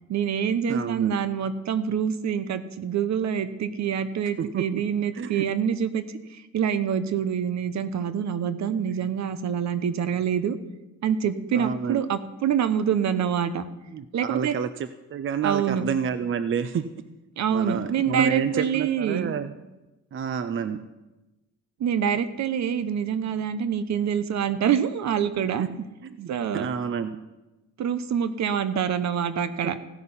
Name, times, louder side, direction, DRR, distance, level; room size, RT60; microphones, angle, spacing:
voice 1, 0.1-6.0 6.3-10.6 11.0-13.6 14.1-14.5 15.4-15.9 17.4-19.3 21.8-25.6 26.3-26.7 27.8-29.8, right 8 dB, 65° right, 12 dB, 1.0 m, -26 dB
voice 2, 0.7-1.1 4.4-4.8 5.1-5.4 11.5-12.1 13.9-14.7 15.1-16.9 17.5-19.5 20.1-20.8 25.6-25.7 26.0-27.2, right 7 dB, 40° right, 11 dB, 0.7 m, -29 dB
15.5 x 9.5 x 5.7 m, 1.0 s
cardioid pair, 90°, 30 cm